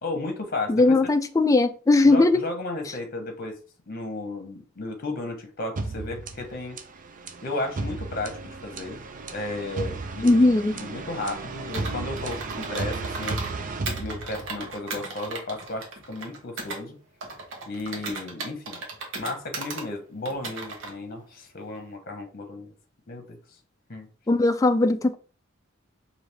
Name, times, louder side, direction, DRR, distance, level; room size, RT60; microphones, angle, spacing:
voice 1, 0.0-1.0 2.1-3.6 3.9-6.8 7.4-9.0 9.3-10.4 10.7-13.4 14.0-17.0 17.7-18.8 19.2-22.7 23.1-23.4 23.9-24.1, left 2 dB, 50° left, 0.9 m, -34 dB
voice 2, 0.7-2.4 10.2-10.7 24.3-25.2, left 2 dB, 15° left, 0.3 m, -19 dB
sound 1, 5.8-14.7, right 3 dB, 40° right, 0.5 m, -34 dB
Computer keyboard, 11.7-13.5 13.9-16.8 17.2-19.9 20.3-20.9, right 3 dB, 65° right, 1.0 m, -36 dB
4.8 x 2.7 x 3.4 m
head